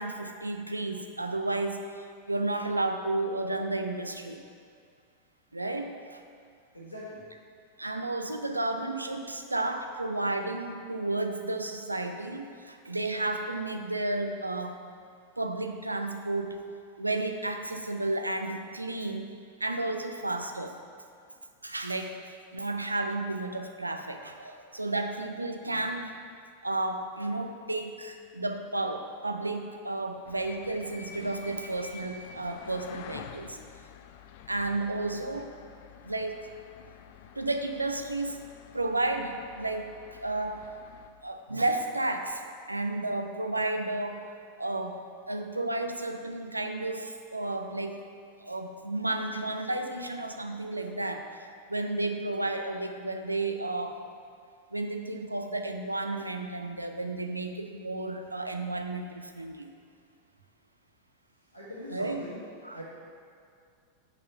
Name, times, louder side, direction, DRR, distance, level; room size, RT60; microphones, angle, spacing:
voice 1, 0.0-4.4 5.5-6.2 7.8-14.8 15.4-16.6 17.0-19.3 19.6-20.8 21.6-26.2 26.6-33.6 34.5-35.5 36.0-36.4 37.4-38.5 38.7-40.7 41.2-42.4 42.7-44.3 44.6-48.0 48.4-51.3 51.7-54.0 54.7-59.7 61.9-62.3 62.6-62.8, right 2 dB, 85° right, 5 dB, 0.5 m, -32 dB
voice 2, 6.7-7.2 61.5-62.4 62.7-62.8, left 1 dB, 85° left, -8 dB, 1.4 m, -42 dB
sound 1, 30.3-41.1, left 7 dB, 50° left, 0.4 m, -48 dB
5.8 x 5.4 x 5.4 m, 2.3 s
figure-of-eight pair, 90°, 0 cm